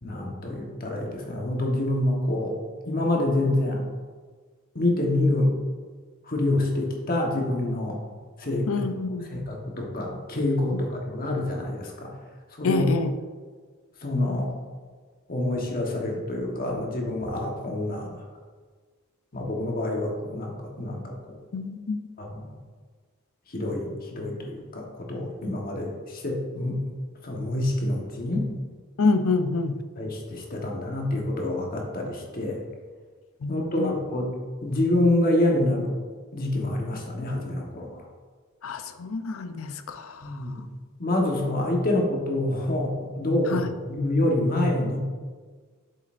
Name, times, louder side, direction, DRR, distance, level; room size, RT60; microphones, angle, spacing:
voice 1, 0.0-2.6 2.8-3.9 4.7-5.5 6.2-8.0 8.4-8.7 9.3-12.1 12.5-12.8 14.0-14.5 15.3-18.2 19.3-21.4 22.2-22.5 23.5-26.8 27.2-28.5 30.0-32.6 33.5-34.3 34.6-36.0 36.3-38.1 40.2-40.7 41.0-45.0, left 1 dB, 40° left, 0 dB, 1.3 m, -27 dB
voice 2, 8.7-9.3 12.6-13.1 21.5-22.0 29.0-29.8 33.4-33.9 38.6-40.4 43.5-43.7, left 3 dB, 65° left, 9 dB, 0.5 m, -27 dB
7.9 x 7.5 x 2.6 m, 1.5 s
head